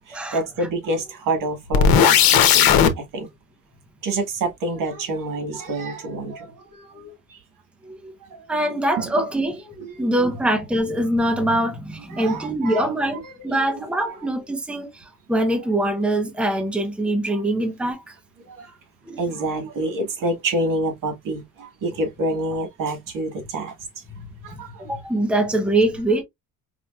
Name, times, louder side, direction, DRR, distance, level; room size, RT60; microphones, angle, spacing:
voice 1, 0.0-3.3 4.0-7.4 7.8-9.1 9.8-10.1 12.1-12.9 13.2-14.2 17.3-17.4 18.4-18.7 19.2-24.0 24.4-24.9, right 2 dB, 65° right, 1.8 m, -28 dB
sound 1, 1.7-2.9, left 8 dB, 90° left, 0.9 m, -15 dB
voice 2, 8.5-9.6 10.0-18.1 18.6-18.7 19.1-19.2 24.5-26.2, right 1 dB, 5° right, 0.9 m, -23 dB
5.0 x 2.9 x 2.4 m
cardioid pair, 125°, 34 cm